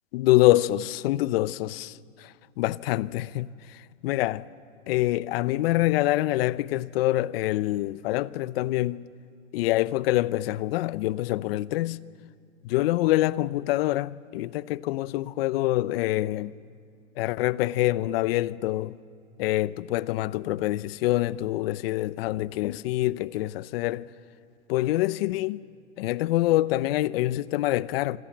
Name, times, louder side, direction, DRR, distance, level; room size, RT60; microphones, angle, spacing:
voice 1, 0.1-4.4 4.9-9.0 9.5-12.0 12.6-16.5 17.2-19.0 19.4-24.1 24.7-25.7 26.0-28.2, left 16 dB, 50° left, 0.7 m, -26 dB
26.5 x 25.5 x 7.4 m
hypercardioid pair, 135°, 38 cm